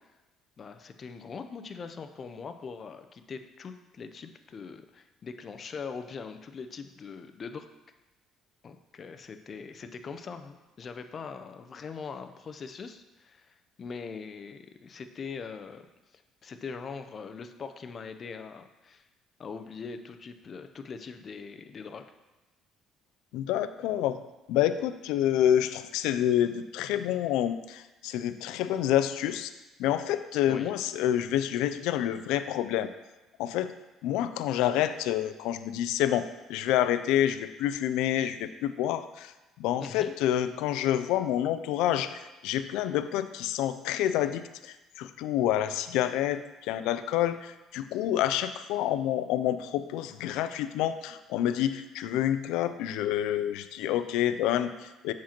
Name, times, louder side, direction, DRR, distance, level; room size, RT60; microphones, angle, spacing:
voice 1, 0.6-7.7 8.6-15.9 16.1-19.0 19.4-22.1 30.5-30.7 39.8-40.1, left 5 dB, 40° left, 8 dB, 0.6 m, -42 dB
voice 2, 23.3-24.2 24.5-29.5 29.8-32.9 33.4-33.7 34.0-39.3 39.6-46.4 46.7-55.1, left 11 dB, 85° left, 11 dB, 0.4 m, -28 dB
7.4 x 7.1 x 3.0 m, 1.1 s
cardioid pair, 95°, 0 cm